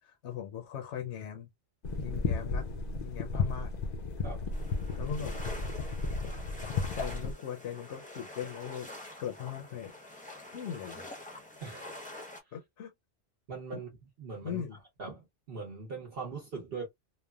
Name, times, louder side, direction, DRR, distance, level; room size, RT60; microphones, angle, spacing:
voice 1, 0.0-1.5 2.0-2.7 3.0-3.7 5.0-5.3 6.9-8.9 9.2-9.9 10.5-11.1 12.5-12.9 13.7-13.8 14.4-14.8, left 9 dB, 75° left, 0.9 m, -39 dB
sound 1, 1.8-7.3, left 4 dB, 50° left, 0.5 m, -34 dB
sound 2, 4.5-12.4, left 2 dB, 10° left, 0.7 m, -45 dB
voice 2, 11.6-11.9 13.5-13.9 14.2-14.6 15.0-16.9, right 4 dB, 60° right, 1.0 m, -40 dB
3.2 x 2.1 x 2.2 m
omnidirectional pair, 1.2 m